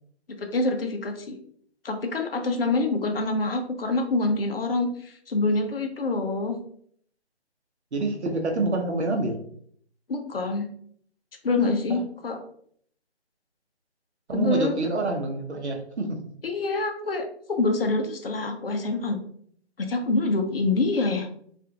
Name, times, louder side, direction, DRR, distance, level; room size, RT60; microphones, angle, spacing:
voice 1, 0.4-1.4 1.8-6.6 10.1-10.7 11.4-12.4 14.3-14.7 16.4-19.2 19.8-21.3, left 3 dB, 60° left, 5 dB, 0.5 m, -26 dB
voice 2, 7.9-9.4 11.9-12.0 14.3-16.2, right 2 dB, 75° right, 3 dB, 0.7 m, -27 dB
2.4 x 2.3 x 2.8 m, 0.62 s
figure-of-eight pair, 175°, 34 cm